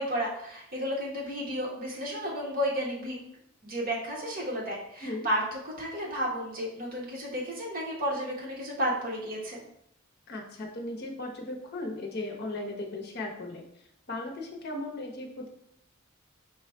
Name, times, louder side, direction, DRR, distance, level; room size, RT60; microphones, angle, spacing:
voice 1, 0.0-3.2 3.6-9.6, equal, 45° right, -3 dB, 1.2 m, -32 dB
voice 2, 10.3-15.5, left 2 dB, 50° left, 2 dB, 0.9 m, -37 dB
5.0 x 2.3 x 4.3 m, 0.74 s
head